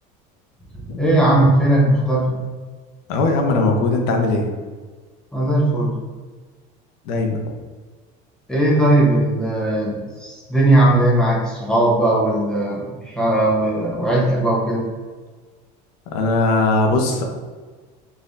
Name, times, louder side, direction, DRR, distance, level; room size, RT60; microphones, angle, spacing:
voice 1, 0.7-2.4 5.3-6.0 8.5-14.9, right 1 dB, 5° left, -4 dB, 0.8 m, -18 dB
voice 2, 3.1-4.5 7.0-7.4 16.1-17.2, left 2 dB, 80° left, 2 dB, 0.8 m, -19 dB
4.9 x 3.3 x 2.6 m, 1.4 s
cardioid pair, 170°, 19 cm